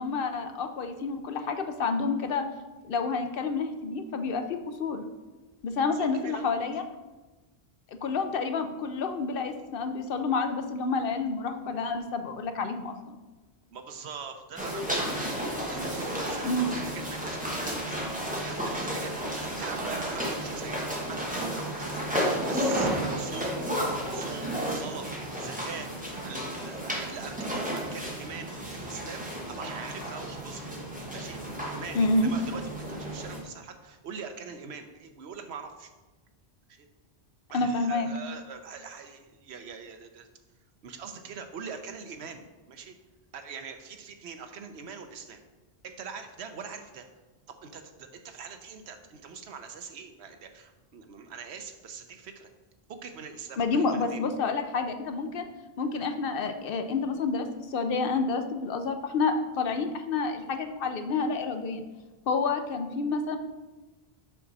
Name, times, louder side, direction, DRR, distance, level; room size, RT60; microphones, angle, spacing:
voice 1, 0.0-2.4 2.8-5.0 5.6-6.8 7.9-13.2 16.4-16.7 31.9-32.3 37.5-38.1 53.6-55.5 55.8-61.8 62.3-63.4, left 4 dB, 65° left, 7 dB, 0.8 m, -29 dB
voice 2, 5.9-6.5 13.7-20.8 21.1-23.6 24.1-25.9 26.2-30.6 31.1-35.9 36.7-36.9 37.5-40.3 40.8-42.9 43.3-45.4 45.8-47.1 47.5-52.5 52.9-54.2, right 5 dB, 85° right, 7 dB, 1.0 m, -43 dB
sound 1, 14.6-33.4, equal, 10° right, 1.3 m, -32 dB
sound 2, 19.0-25.9, right 5 dB, 55° right, 0.7 m, -44 dB
6.0 x 5.8 x 4.0 m, 1.2 s
omnidirectional pair, 1.1 m